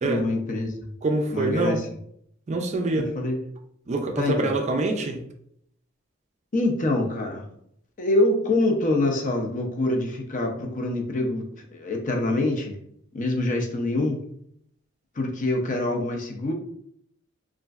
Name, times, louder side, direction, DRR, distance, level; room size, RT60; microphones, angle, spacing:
voice 1, 0.0-0.7 1.3-1.9 3.0-3.4 4.2-4.5 6.5-7.4 8.0-12.8 13.1-14.2 15.2-16.5, left 2 dB, 40° left, 2 dB, 0.5 m, -25 dB
voice 2, 1.0-1.8 2.5-3.1 3.9-5.2, right 2 dB, 35° right, 4 dB, 0.4 m, -25 dB
3.0 x 2.5 x 2.3 m, 0.70 s
head